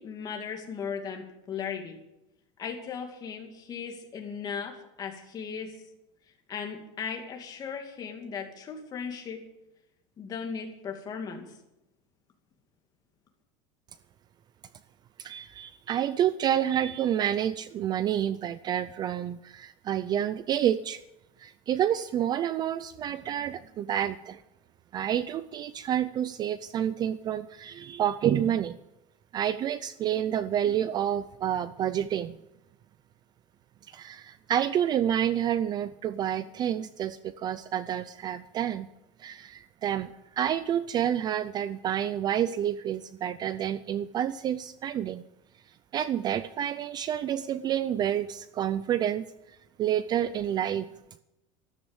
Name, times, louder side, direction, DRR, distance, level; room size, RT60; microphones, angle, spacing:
voice 1, 0.0-2.0 2.6-5.8 6.5-9.4 10.2-11.5, left 6 dB, 25° left, 3 dB, 2.4 m, -37 dB
voice 2, 15.2-21.0 21.4-24.4 24.9-28.7 29.3-32.4 33.9-38.9 39.2-45.2 45.9-49.2 49.8-50.9, right 10 dB, 30° right, 15 dB, 0.4 m, -29 dB
13.5 x 13.5 x 7.2 m, 0.89 s
cardioid pair, 160°, 15 cm